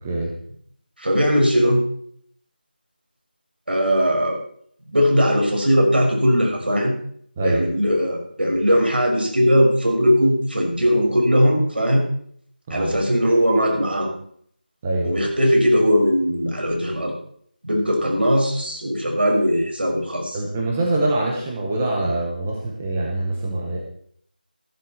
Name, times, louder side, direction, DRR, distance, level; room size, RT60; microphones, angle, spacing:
voice 1, 0.0-0.3 7.4-7.6 12.7-12.9 14.8-15.1 20.3-23.8, right 2 dB, 5° right, -2 dB, 0.7 m, -24 dB
voice 2, 1.0-1.8 3.7-4.4 4.9-6.9 7.4-12.0 12.7-14.1 15.0-17.1 17.6-20.4, equal, 80° right, 1 dB, 6.2 m, -19 dB
14.5 x 12.0 x 4.5 m, 0.63 s
figure-of-eight pair, 175°, 5 cm